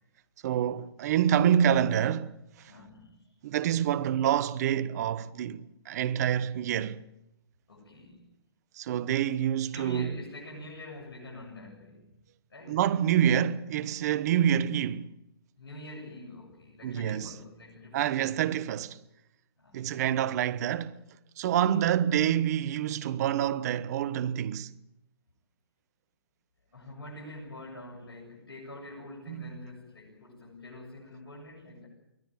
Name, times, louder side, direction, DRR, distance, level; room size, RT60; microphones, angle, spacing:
voice 1, 0.4-2.3 3.4-7.1 8.8-10.1 12.7-15.1 16.8-17.3 17.9-19.0 19.7-21.0 21.4-24.7 29.3-29.5, right 10 dB, 40° right, 1.1 m, -27 dB
voice 2, 2.7-3.4 7.7-8.3 9.7-12.2 12.5-12.8 15.6-18.4 19.6-19.9 21.4-21.9 26.7-31.9, left 1 dB, 65° left, 7.9 m, -46 dB
24.0 x 17.5 x 9.4 m
figure-of-eight pair, 130°, 13 cm